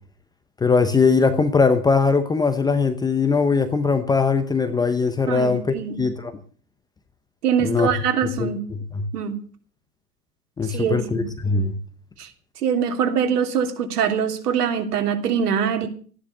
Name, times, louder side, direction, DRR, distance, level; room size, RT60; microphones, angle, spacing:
voice 1, 0.6-6.3 7.6-7.9 8.4-8.5 8.9-9.0 10.6-11.7, left 4 dB, 10° left, 9 dB, 0.8 m, -20 dB
voice 2, 5.3-6.0 7.4-8.6 9.1-9.4 10.7-11.2 12.2-12.3 12.6-15.9, right 7 dB, 65° right, 6 dB, 3.3 m, -23 dB
14.5 x 10.0 x 8.0 m, 0.43 s
hypercardioid pair, 125°, 49 cm